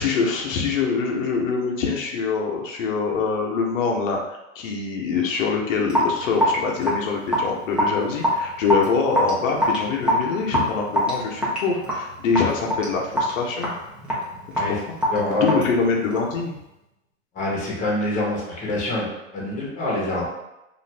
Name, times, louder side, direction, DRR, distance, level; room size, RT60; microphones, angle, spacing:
voice 1, 0.0-13.7 14.7-14.8 15.3-16.5, left 5 dB, 80° left, 0 dB, 0.7 m, -24 dB
Raindrop / Drip, 5.9-16.4, equal, 5° right, 0.4 m, -25 dB
voice 2, 15.1-15.6 17.3-20.3, left 1 dB, 20° left, -4 dB, 0.9 m, -25 dB
2.5 x 2.4 x 3.2 m, 0.92 s
hypercardioid pair, 130°, 39 cm